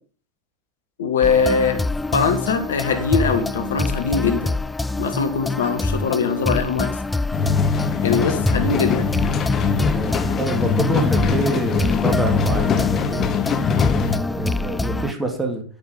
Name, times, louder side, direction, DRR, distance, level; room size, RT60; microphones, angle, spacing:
voice 1, 1.0-1.8 2.1-4.5 5.0-7.0 8.0-9.1, left 5 dB, 70° left, 8 dB, 1.7 m, -21 dB
sound 1, 1.2-15.1, left 2 dB, 10° left, 0.4 m, -25 dB
sound 2, 7.3-14.2, left 6 dB, 30° left, 1.2 m, -22 dB
voice 2, 10.0-13.3 13.9-15.6, right 2 dB, 5° right, 3 dB, 2.5 m, -26 dB
10.5 x 9.0 x 5.3 m, 0.41 s
figure-of-eight pair, 85°, 0 cm